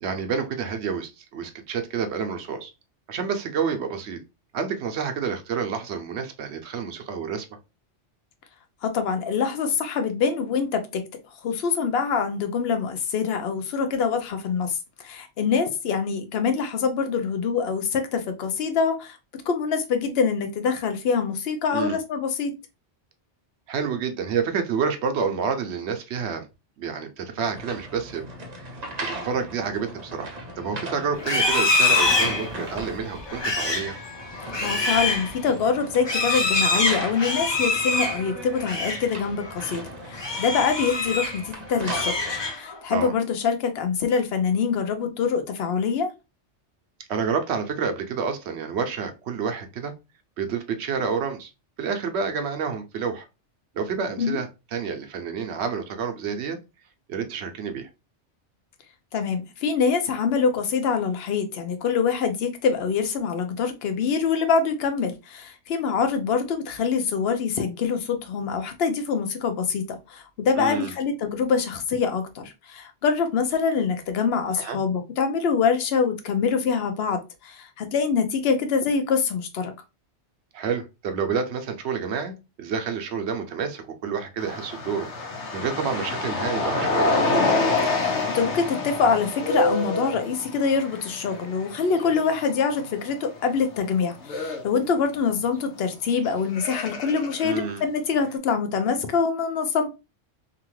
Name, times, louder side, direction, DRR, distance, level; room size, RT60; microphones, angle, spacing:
voice 1, 0.0-2.7 3.1-4.2 4.5-7.5 21.7-22.0 23.7-26.5 26.8-28.3 29.1-34.0 42.9-43.1 47.1-49.9 50.4-51.5 51.8-53.3 53.7-56.6 57.1-57.9 70.6-70.9 74.6-74.8 80.5-85.1 85.5-87.2 97.4-97.8, right 6 dB, 75° right, 0.9 m, -29 dB
voice 2, 8.8-11.0 11.4-19.2 19.5-22.5 34.6-42.1 42.5-46.1 54.2-54.4 59.1-79.7 87.9-99.9, left 5 dB, 65° left, 0.8 m, -25 dB
sound 1, 27.4-42.5, right 1 dB, 40° right, 0.7 m, -38 dB
Livestock farm animals working animals, 31.2-39.1 39.4-39.7 40.1-41.4 41.7-42.8, left 2 dB, 35° left, 0.4 m, -25 dB
sound 2, 84.4-93.0 93.4-93.6 94.2-94.6 96.1-96.2 96.5-97.5, left 2 dB, 90° left, 1.1 m, -27 dB
2.8 x 2.4 x 3.0 m
omnidirectional pair, 1.2 m